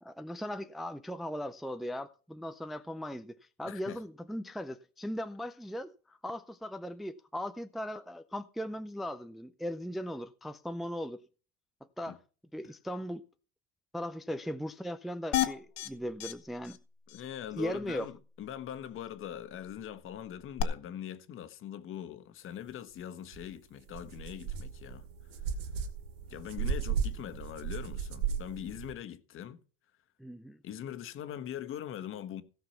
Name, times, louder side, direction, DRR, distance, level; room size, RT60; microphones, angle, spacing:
voice 1, 0.0-11.2 12.0-12.2 12.5-13.2 13.9-16.8 17.5-18.1 30.2-30.6, equal, ahead, 0.5 m, -38 dB
voice 2, 3.6-4.0 12.1-12.2 17.1-25.0 26.3-29.6 30.6-32.4, left 10 dB, 45° left, 1.4 m, -42 dB
sound 1, 15.3-15.9 16.2-16.3 16.6-16.8 17.1-17.2 20.6-20.7, left 14 dB, 65° left, 1.7 m, -30 dB
sound 2, 23.3-23.4 23.9-28.9, right 7 dB, 85° right, 2.5 m, -35 dB
16.5 x 6.0 x 5.7 m
supercardioid pair, 125°, 29 cm